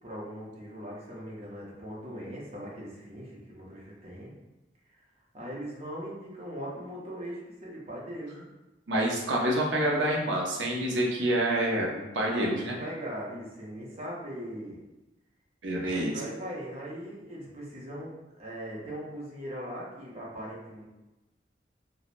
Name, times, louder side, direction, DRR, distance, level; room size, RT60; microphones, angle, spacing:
voice 1, 0.0-4.3 5.3-8.5 12.3-14.8 15.9-18.1 18.4-20.8, equal, 35° right, -5 dB, 0.7 m, -40 dB
voice 2, 8.9-12.8 15.6-16.1, right 1 dB, 75° right, -1 dB, 0.6 m, -27 dB
3.0 x 2.0 x 2.4 m, 1.0 s
head